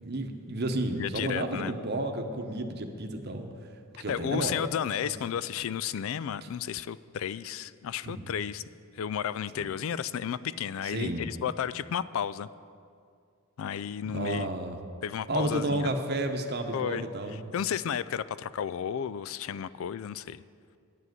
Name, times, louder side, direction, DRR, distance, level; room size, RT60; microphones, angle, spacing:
voice 1, 0.0-3.5 4.0-4.6 5.1-5.2 8.0-8.3 9.6-9.7 10.8-11.3 14.0-14.8 15.3-17.5, right 2 dB, 50° right, 5 dB, 0.9 m, -32 dB
voice 2, 1.0-1.7 4.1-8.6 8.9-12.5 13.6-14.5 15.0-15.9 16.7-20.4, left 8 dB, 70° left, 17 dB, 0.3 m, -33 dB
9.9 x 7.4 x 7.9 m, 2.3 s
head